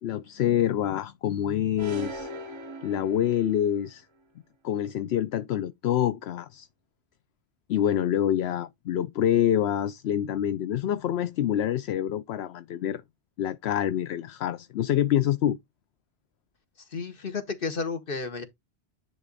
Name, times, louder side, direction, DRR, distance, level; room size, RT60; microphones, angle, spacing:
voice 1, 0.0-2.3 2.8-4.1 4.6-6.7 7.7-13.0 13.4-15.6, left 10 dB, 80° left, 0.9 m, -26 dB
sound 1, 1.8-3.8, right 1 dB, 35° right, 0.6 m, -40 dB
voice 2, 16.9-18.4, left 4 dB, 55° left, 1.6 m, -32 dB
10.0 x 4.0 x 4.0 m
omnidirectional pair, 1.1 m